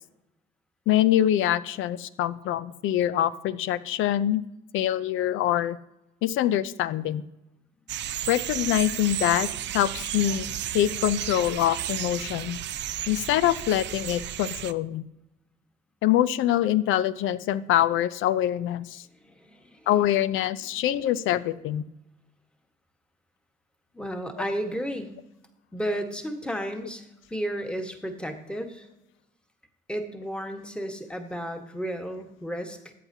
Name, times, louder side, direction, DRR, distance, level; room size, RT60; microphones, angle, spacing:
voice 1, 0.9-4.4 4.7-5.8 6.2-7.2 8.3-9.5 9.7-12.6 13.1-15.0 16.0-19.0 19.9-21.8, left 12 dB, 85° left, 17 dB, 0.5 m, -24 dB
sound 1, 7.9-14.7, right 11 dB, 65° right, 0.5 m, -33 dB
voice 2, 19.1-19.9 23.9-25.2 25.7-28.9 29.9-32.9, equal, 5° left, 5 dB, 1.4 m, -33 dB
13.5 x 8.5 x 2.8 m, 0.90 s
cardioid pair, 90°, 20 cm